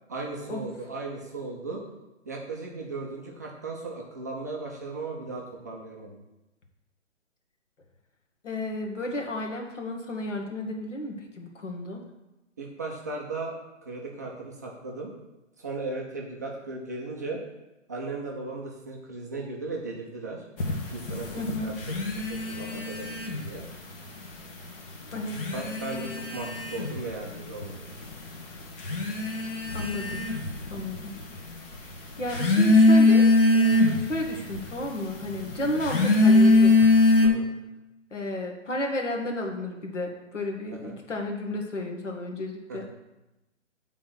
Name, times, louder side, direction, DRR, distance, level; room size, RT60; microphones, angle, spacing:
voice 1, 0.1-1.8 2.3-6.1 12.6-13.5 13.8-15.1 15.6-17.4 17.9-20.4 20.9-22.0 22.3-23.6 25.5-28.0 35.6-35.8 37.2-37.5 40.8-41.0 42.7-42.9, right 3 dB, 15° right, -2 dB, 0.4 m, -36 dB
voice 2, 8.4-12.0 21.4-21.7 25.1-25.4 29.7-30.2 30.7-31.1 31.8-33.3 33.5-36.9 38.1-42.9, left 1 dB, 70° left, 2 dB, 1.8 m, -32 dB
sound 1, 20.6-23.7 23.9-24.7 25.2-37.3, left 2 dB, 45° left, 1.4 m, -22 dB
8.4 x 3.8 x 5.9 m, 0.98 s
figure-of-eight pair, 140°, 37 cm